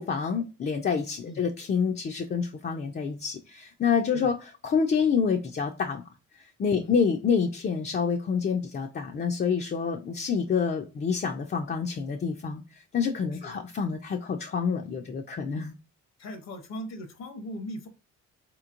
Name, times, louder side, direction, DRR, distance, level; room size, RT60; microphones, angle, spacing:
voice 1, 0.0-6.0 6.4-15.7, left 6 dB, 35° left, 2 dB, 0.5 m, -28 dB
voice 2, 16.2-17.9, equal, 60° left, 7 dB, 0.8 m, -39 dB
4.2 x 3.0 x 2.5 m, 0.31 s
cardioid pair, 90°, 30 cm